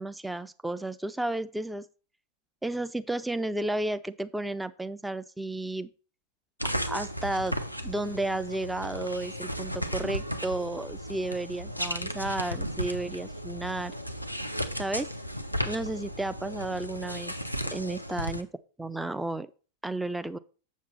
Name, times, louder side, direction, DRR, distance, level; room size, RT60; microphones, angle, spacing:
voice 1, 0.0-1.9 2.6-5.9 6.6-7.5 7.8-13.9 14.8-15.1 15.6-17.3 17.7-18.5 18.8-19.5 19.8-20.4, right 2 dB, 5° right, 13 dB, 0.5 m, -32 dB
sound 1, 6.6-18.4, equal, 90° right, 0.7 m, -35 dB
7.3 x 7.2 x 4.0 m, 0.36 s
figure-of-eight pair, 90°, 0 cm